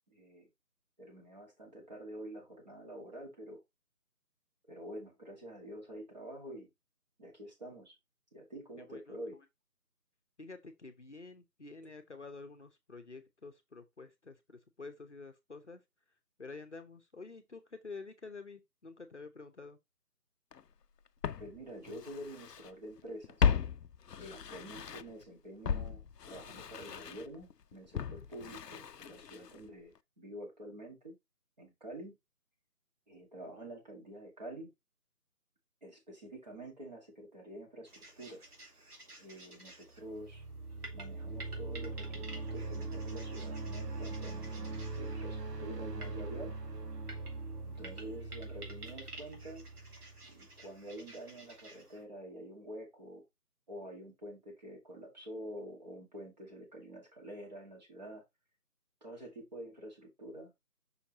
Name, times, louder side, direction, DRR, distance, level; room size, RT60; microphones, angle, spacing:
voice 1, 0.1-0.5 1.0-3.6 4.7-6.7 7.2-7.9 8.3-9.4 21.4-23.5 24.2-31.1 31.6-32.2 33.1-34.7 35.8-37.9 38.2-38.4 39.2-40.4 40.9-46.5 47.7-49.6 50.3-53.2 53.7-58.2 59.0-60.5, right 1 dB, 25° right, 2.1 m, -47 dB
voice 2, 8.9-9.4 10.4-15.8 16.4-19.8, left 4 dB, 45° left, 0.9 m, -49 dB
Walk footsteps, 20.5-20.6 21.2-22.7 23.0-25.2 25.6-29.7 30.0-30.1, left 7 dB, 80° left, 0.6 m, -36 dB
sound 1, 37.9-52.0, right 2 dB, 70° right, 2.5 m, -53 dB
sound 2, 39.9-50.7, right 3 dB, 90° right, 1.2 m, -41 dB
5.8 x 4.4 x 4.0 m
figure-of-eight pair, 165°, 47 cm